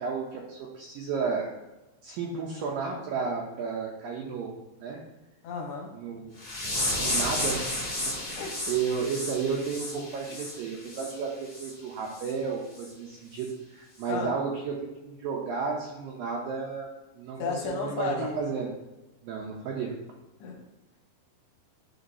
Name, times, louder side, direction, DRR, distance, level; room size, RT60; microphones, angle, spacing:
voice 1, 0.0-1.5 2.0-4.5 4.8-5.0 5.9-6.3 7.0-7.7 8.2-14.8 15.0-16.9 17.2-18.7 19.2-20.0, right 5 dB, 90° right, -1 dB, 2.0 m, -32 dB
voice 2, 5.4-5.9 8.4-8.6 14.1-14.3 17.4-18.4 20.4-20.6, left 5 dB, 70° left, -1 dB, 2.8 m, -33 dB
sound 1, 6.4-11.1 11.5-11.7 12.1-12.3 12.8-12.9 13.4-13.5, left 1 dB, 20° left, 1.4 m, -32 dB
11.5 x 3.9 x 2.8 m, 1.0 s
omnidirectional pair, 5.0 m